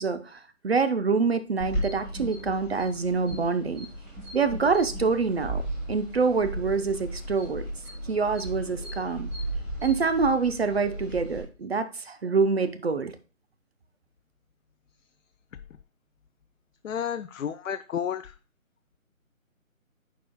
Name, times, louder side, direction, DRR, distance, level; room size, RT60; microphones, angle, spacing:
voice 1, 0.0-3.9 4.3-5.6 5.9-7.7 8.1-9.3 9.8-13.1, right 4 dB, 50° right, 11 dB, 0.6 m, -26 dB
sound 1, 1.6-11.4, right 1 dB, 10° right, 1.3 m, -35 dB
voice 2, 16.8-18.3, left 8 dB, 70° left, 9 dB, 0.5 m, -31 dB
13.0 x 4.7 x 2.2 m, 0.34 s
figure-of-eight pair, 155°, 41 cm